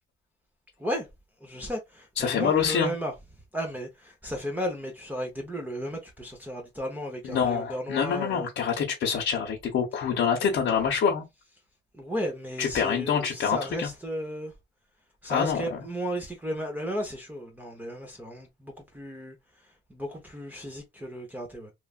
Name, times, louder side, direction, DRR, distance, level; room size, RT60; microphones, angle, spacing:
voice 1, 1.4-3.1 3.5-8.5 11.9-14.5 15.2-21.7, equal, 10° right, 0.8 m, -34 dB
voice 2, 2.2-2.9 7.3-11.2 12.6-13.9 15.3-15.8, left 7 dB, 70° left, 0.9 m, -26 dB
3.1 x 2.4 x 2.3 m
cardioid pair, 90°, 20 cm